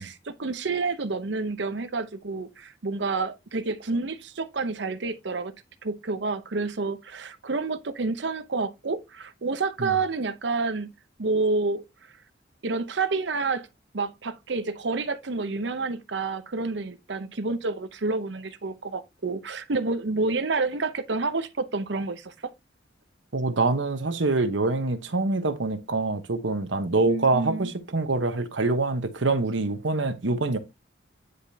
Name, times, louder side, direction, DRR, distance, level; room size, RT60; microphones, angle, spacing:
voice 1, 0.0-5.5 5.8-10.9 11.2-11.8 12.6-13.7 13.9-22.5 27.1-27.7, right 3 dB, 70° right, 0.8 m, -29 dB
voice 2, 23.3-30.6, right 3 dB, 90° right, 1.1 m, -25 dB
9.7 x 5.1 x 2.8 m
head